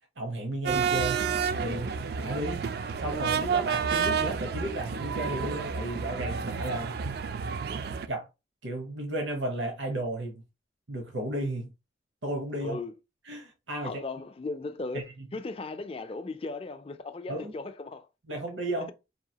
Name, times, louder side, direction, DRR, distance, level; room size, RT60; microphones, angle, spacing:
voice 1, 0.2-1.3 1.6-2.6 3.0-6.9 8.1-8.3 8.6-10.4 10.9-11.7 12.2-12.8 13.3-14.0 14.9-15.0 17.3-17.5 18.3-18.9, right 1 dB, 80° right, 1.0 m, -33 dB
sound 1, 0.6-8.1, right 6 dB, 55° right, 0.3 m, -30 dB
voice 2, 12.6-12.9 13.8-18.4 18.8-18.9, left 3 dB, 30° left, 0.4 m, -37 dB
4.7 x 2.6 x 2.8 m
head